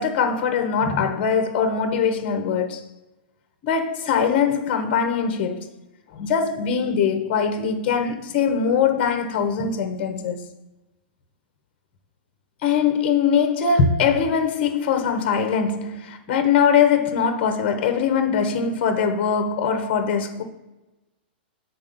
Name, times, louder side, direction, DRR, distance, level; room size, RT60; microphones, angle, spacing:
voice 1, 0.0-2.8 3.6-5.7 6.1-10.4 12.6-20.4, left 6 dB, 25° left, 0.8 m, -22 dB
8.3 x 4.2 x 3.9 m
hypercardioid pair, 175°, 6 cm